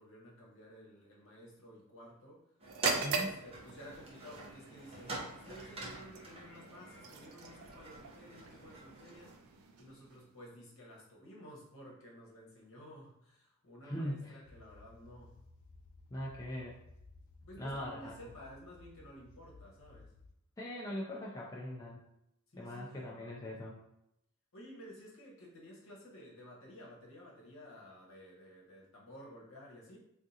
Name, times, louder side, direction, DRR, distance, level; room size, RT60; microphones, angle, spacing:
voice 1, 0.0-2.4 3.1-15.4 17.4-20.1 22.5-23.0 24.5-30.0, equal, 65° left, -3 dB, 1.0 m, -53 dB
sound 1, 2.6-9.3, right 2 dB, 25° right, 0.8 m, -44 dB
sound 2, 2.7-10.5, right 4 dB, 75° right, 0.4 m, -42 dB
voice 2, 3.0-3.3 13.8-14.4 16.1-16.8 17.6-18.2 20.6-22.0 22.6-23.8, equal, 15° left, -4 dB, 0.4 m, -41 dB
sound 3, 14.4-20.3, left 3 dB, 80° left, 0.5 m, -58 dB
3.6 x 2.4 x 2.7 m, 0.82 s
head